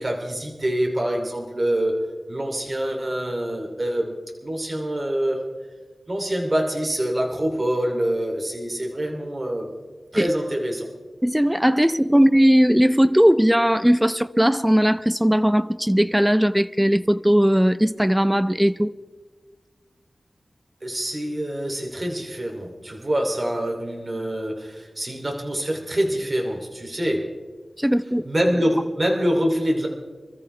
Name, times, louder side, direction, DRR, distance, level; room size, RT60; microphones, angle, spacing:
voice 1, 0.0-1.9 2.3-4.2 4.4-5.4 6.1-9.7 10.1-10.8 12.1-12.2 20.8-27.3 28.2-29.9, equal, 35° right, 1 dB, 2.9 m, -25 dB
voice 2, 11.2-18.9 27.8-28.2, equal, 5° right, 14 dB, 0.6 m, -18 dB
27.0 x 14.0 x 3.3 m, 1.4 s
wide cardioid pair, 70°, 0 cm